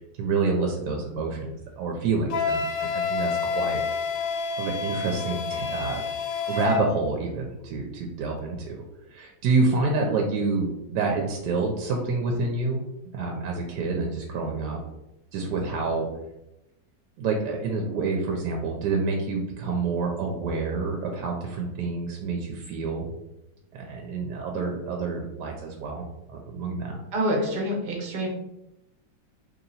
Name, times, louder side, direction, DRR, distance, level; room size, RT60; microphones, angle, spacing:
voice 1, 0.2-3.8 4.6-6.0 6.5-8.8 9.1-12.8 13.1-14.8 15.3-16.1 17.2-23.1 23.7-27.0, right 4 dB, 70° right, 1 dB, 1.1 m, -28 dB
Wind instrument woodwind instrument, 2.3-6.8, left 5 dB, 85° left, 1.4 m, -28 dB
voice 2, 27.1-28.3, equal, 40° right, -1 dB, 0.7 m, -26 dB
3.0 x 2.9 x 4.0 m, 0.89 s
omnidirectional pair, 2.0 m